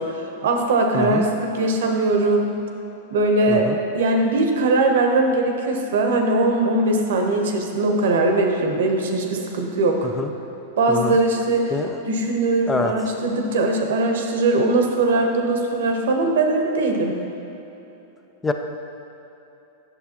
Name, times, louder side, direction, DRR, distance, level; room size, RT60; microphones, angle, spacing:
voice 1, 0.0-2.5 3.1-10.1 10.8-11.8 12.1-17.2, right 2 dB, 75° right, 3 dB, 0.8 m, -20 dB
voice 2, 0.9-1.2 3.5-3.8 10.2-10.3 10.9-11.2 11.7-11.9 12.7-12.9 18.4-18.5, left 3 dB, 15° left, 5 dB, 0.4 m, -25 dB
8.2 x 6.7 x 2.9 m, 3.0 s
hypercardioid pair, 125°, 0 cm